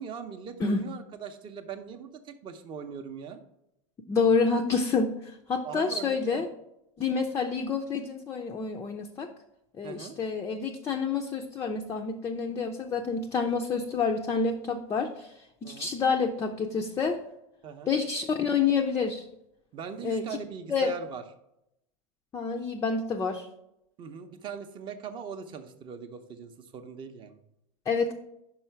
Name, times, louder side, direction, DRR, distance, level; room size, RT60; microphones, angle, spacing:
voice 1, 0.0-3.4 5.6-6.4 9.8-10.2 15.6-15.9 17.6-17.9 19.7-21.2 24.0-27.4, right 7 dB, 30° right, 8 dB, 0.6 m, -40 dB
voice 2, 4.1-6.5 7.0-9.3 9.8-15.3 15.6-17.2 17.9-19.2 20.0-20.3 20.7-20.9 22.3-23.5 27.9-28.1, left 5 dB, 15° left, 3 dB, 0.4 m, -28 dB
5.5 x 4.8 x 4.4 m, 0.83 s
supercardioid pair, 140°, 17 cm